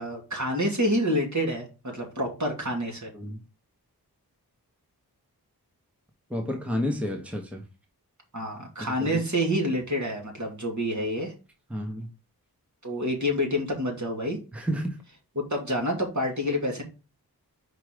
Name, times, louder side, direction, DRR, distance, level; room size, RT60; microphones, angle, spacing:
voice 1, 0.0-3.1 8.3-11.3 12.8-14.4 15.4-16.8, equal, 45° right, 2.6 m, -28 dB
voice 2, 6.3-7.6 8.8-9.2 11.7-12.1 14.5-15.0, equal, 5° right, 1.0 m, -31 dB
4.9 x 4.8 x 5.0 m
wide cardioid pair, 60°, 38 cm